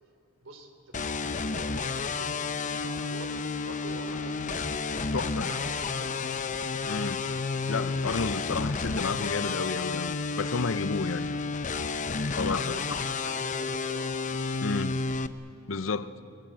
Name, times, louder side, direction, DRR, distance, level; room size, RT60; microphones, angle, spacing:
voice 1, 0.4-3.3 3.6-6.2 11.1-11.2 12.0-14.2, right 1 dB, 70° right, 3.4 m, -46 dB
sound 1, 0.9-15.3, left 4 dB, 40° left, 0.7 m, -31 dB
voice 2, 5.1-5.5 6.9-7.2 7.7-11.4 12.3-12.8 14.6-15.0 15.7-16.2, left 4 dB, 70° left, 0.7 m, -31 dB
30.0 x 20.0 x 7.6 m
head